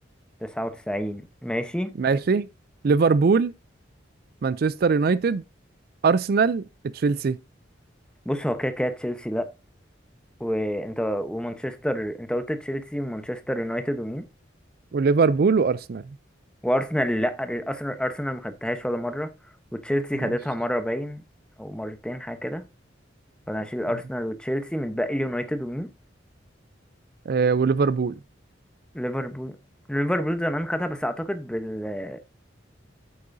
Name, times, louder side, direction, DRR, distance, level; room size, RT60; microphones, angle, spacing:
voice 1, 0.4-2.0 8.3-9.5 10.4-14.3 16.6-19.3 19.7-21.2 21.6-22.7 23.5-25.9 28.9-29.6 29.9-32.2, equal, 5° left, 0.9 m, -28 dB
voice 2, 2.0-2.5 2.8-3.5 4.4-5.4 6.0-6.6 6.9-7.4 14.9-16.0 20.2-20.3 27.3-28.1, right 5 dB, 50° right, 0.4 m, -21 dB
8.6 x 8.5 x 2.6 m
head